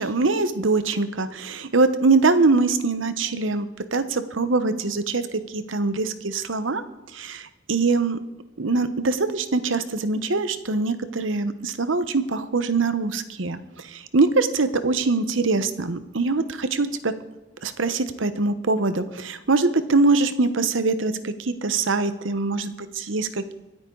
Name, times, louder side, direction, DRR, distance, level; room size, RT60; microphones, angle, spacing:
voice 1, 0.0-3.7 3.9-5.2 5.5-6.8 7.1-8.2 8.6-13.6 13.9-17.1 17.6-23.3, right 3 dB, 85° right, 11 dB, 1.0 m, -23 dB
25.0 x 8.9 x 3.9 m, 1.0 s
head